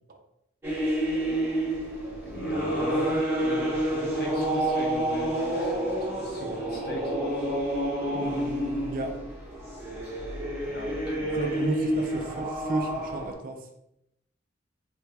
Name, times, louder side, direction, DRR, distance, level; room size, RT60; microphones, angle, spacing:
sound 1, 0.6-13.3, right 1 dB, 10° right, 0.8 m, -29 dB
voice 1, 2.1-7.1 10.6-11.5, equal, 55° left, -1 dB, 0.7 m, -40 dB
voice 2, 8.1-9.2 11.3-13.7, right 2 dB, 45° right, 4 dB, 0.4 m, -33 dB
3.4 x 3.2 x 2.3 m, 0.82 s
head